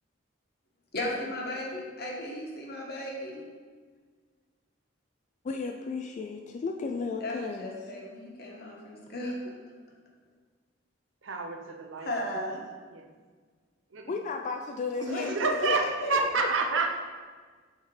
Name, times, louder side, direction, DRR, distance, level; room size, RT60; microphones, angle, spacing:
voice 1, 0.9-3.4 7.2-9.5 12.0-12.6 15.1-16.3, left 1 dB, 55° left, -2 dB, 1.3 m, -35 dB
voice 2, 5.4-7.8 14.1-15.8 16.3-16.5, left 4 dB, 40° left, 4 dB, 0.3 m, -34 dB
voice 3, 11.2-12.1 12.9-13.0 13.9-14.0 15.0-15.8 16.1-16.9, right 3 dB, 85° right, 4 dB, 0.7 m, -28 dB
7.1 x 3.7 x 4.7 m, 1.5 s
head